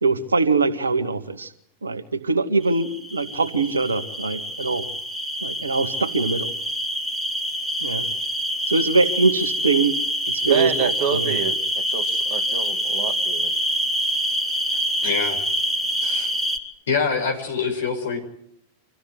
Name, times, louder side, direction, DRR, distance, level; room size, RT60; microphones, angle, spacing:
voice 1, 0.0-1.5 1.8-4.9 5.4-6.5 7.8-8.1 8.7-10.0 10.3-11.4, right 3 dB, 75° right, 1.9 m, -22 dB
sound 1, 2.6-16.6, equal, 5° right, 3.4 m, -26 dB
voice 2, 10.5-13.5, right 8 dB, 50° right, 1.7 m, -28 dB
voice 3, 15.0-15.4 16.0-16.3 16.9-18.2, left 5 dB, 65° left, 6.0 m, -25 dB
26.5 x 15.5 x 9.5 m
figure-of-eight pair, 90°, 0 cm